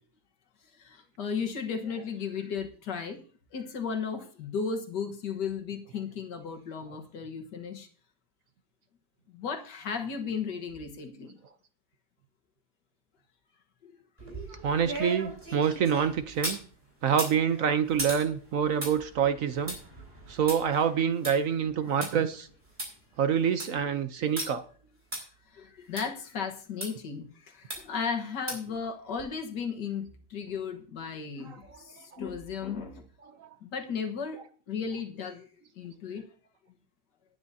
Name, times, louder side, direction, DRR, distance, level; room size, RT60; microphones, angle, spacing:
voice 1, 0.8-3.2 3.5-7.9 9.3-11.4 13.8-13.9 25.5-33.0 33.6-34.4 34.7-35.5 35.8-36.2, left 6 dB, 80° left, 4 dB, 2.0 m, -35 dB
sound 1, 14.2-16.6 17.1-22.1 22.5-22.6 22.8-22.9 23.3-23.8 24.4-24.5 25.1-25.2 26.0-26.1 26.8-26.9 27.7-28.0 28.5-28.8 29.2-29.3, right 1 dB, 25° right, 4.8 m, -37 dB
voice 2, 14.6-16.6 17.0-19.8 20.3-22.5 23.2-24.6, right 7 dB, 60° right, 11 dB, 1.0 m, -26 dB
18.5 x 9.7 x 2.7 m, 0.43 s
omnidirectional pair, 1.8 m